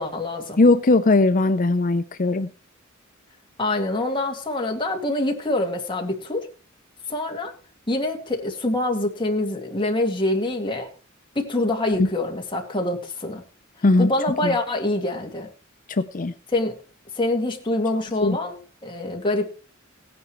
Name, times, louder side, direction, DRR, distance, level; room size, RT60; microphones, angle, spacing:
voice 1, 0.0-0.6 3.6-6.5 7.1-7.5 7.9-10.9 11.4-13.4 14.0-15.5 16.5-16.8 17.2-19.5, left 2 dB, 25° left, 1 dB, 2.2 m, -25 dB
voice 2, 0.6-2.5 11.9-12.1 13.8-14.1 14.4-14.5 15.9-16.3 18.2-18.4, left 2 dB, 40° left, 9 dB, 0.6 m, -19 dB
17.5 x 9.6 x 3.1 m, 0.34 s
head